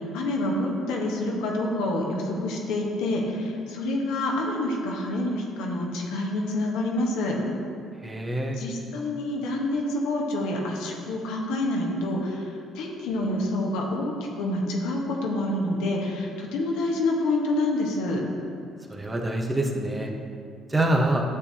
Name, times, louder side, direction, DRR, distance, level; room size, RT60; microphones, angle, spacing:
voice 1, 0.1-7.4 8.5-18.2, left 1 dB, 80° left, -1 dB, 1.1 m, -27 dB
voice 2, 8.0-8.6 18.9-20.1 20.7-21.2, right 1 dB, 20° right, 1 dB, 1.0 m, -25 dB
9.9 x 7.0 x 2.8 m, 2.3 s
supercardioid pair, 65°, 0 cm